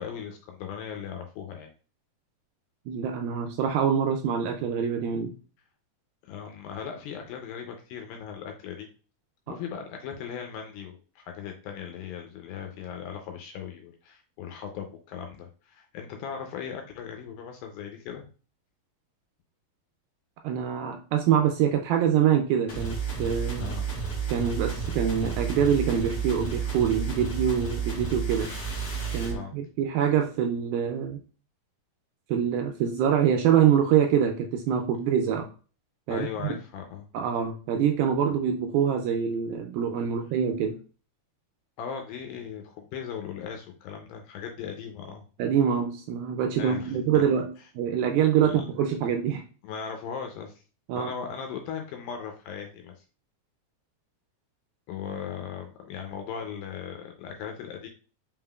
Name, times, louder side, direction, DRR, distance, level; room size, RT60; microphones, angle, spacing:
voice 1, 0.0-1.7 6.2-8.9 9.5-18.3 23.6-23.9 29.3-29.5 36.1-37.1 41.8-45.2 46.6-47.2 48.4-48.6 49.6-50.5 51.0-53.1 54.9-57.9, left 7 dB, 80° left, 3 dB, 2.2 m, -38 dB
voice 2, 2.9-5.3 9.5-9.6 20.4-23.8 24.3-28.5 29.1-31.2 32.3-35.5 36.1-36.6 37.1-40.8 45.4-49.4 50.9-51.1, right 8 dB, 85° right, 4 dB, 2.1 m, -25 dB
sound 1, 22.7-29.4, right 6 dB, 60° left, 1.5 m, -31 dB
5.4 x 3.6 x 2.3 m, 0.37 s
omnidirectional pair, 4.5 m